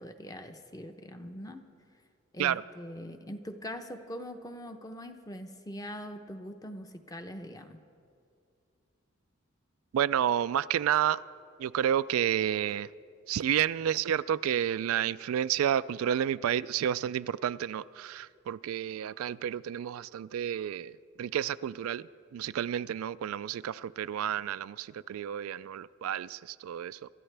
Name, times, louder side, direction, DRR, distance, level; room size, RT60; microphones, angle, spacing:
voice 1, 0.0-1.6 2.3-7.8, equal, 15° left, 0.7 m, -42 dB
voice 2, 9.9-11.2 11.6-12.9 13.3-27.1, right 10 dB, 90° right, 0.3 m, -30 dB
26.0 x 12.5 x 3.3 m
head